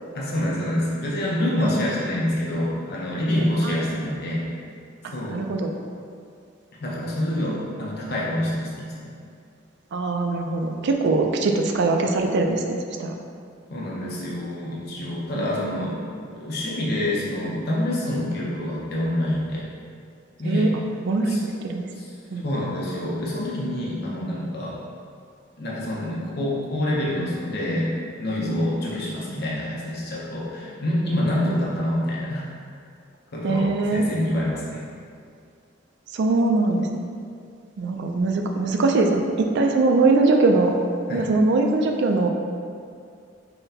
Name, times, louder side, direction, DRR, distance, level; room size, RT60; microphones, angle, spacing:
voice 1, 0.1-4.5 5.1-5.4 6.8-9.1 13.7-19.7 20.4-20.7 21.3-21.4 22.0-22.1 22.4-24.8 25.6-27.9 28.2-32.5 33.3-34.8 41.1-41.3, left 1 dB, 55° left, -5 dB, 0.6 m, -26 dB
voice 2, 3.4-4.1 5.0-5.7 7.5-7.6 9.9-13.2 15.3-15.5 20.4-20.7 21.1-21.8 22.3-22.5 31.4-31.6 33.4-34.0 36.1-36.9 37.8-40.8 41.1-42.3, right 3 dB, 60° right, 3 dB, 0.3 m, -22 dB
5.5 x 2.2 x 2.7 m, 2.3 s
head